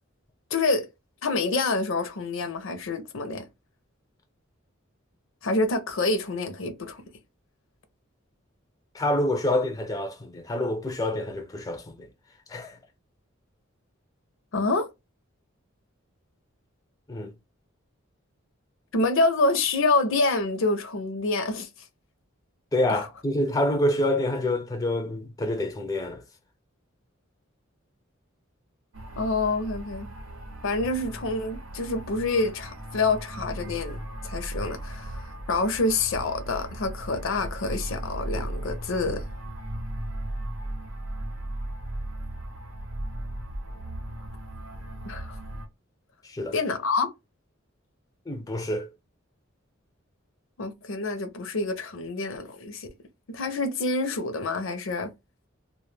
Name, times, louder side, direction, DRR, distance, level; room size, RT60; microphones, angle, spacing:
voice 1, 0.5-0.9 1.2-3.4 5.4-7.0 14.5-14.9 18.9-21.7 22.9-23.1 29.2-30.1 30.6-39.2 45.1-45.4 46.5-47.1 50.6-52.9 53.3-55.1, left 3 dB, 65° left, 0.5 m, -27 dB
voice 2, 8.9-12.1 12.5-12.8 17.1-17.3 22.7-26.2 46.2-46.5 48.3-48.9, left 1 dB, 15° left, 0.4 m, -27 dB
sound 1, 28.9-45.7, right 1 dB, 85° right, 0.8 m, -36 dB
2.2 x 2.1 x 3.1 m
head